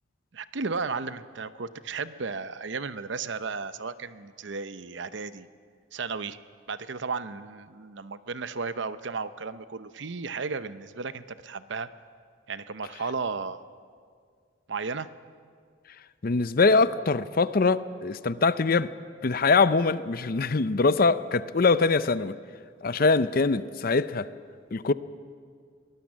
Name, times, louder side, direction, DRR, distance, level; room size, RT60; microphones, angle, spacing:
voice 1, 0.3-5.5 5.9-6.4 6.7-11.9 12.5-13.6 14.7-15.1, right 4 dB, 65° right, 0.7 m, -34 dB
voice 2, 16.2-18.9 19.2-22.4 22.8-24.3 24.7-24.9, left 4 dB, 45° left, 0.6 m, -23 dB
22.5 x 19.0 x 7.4 m
head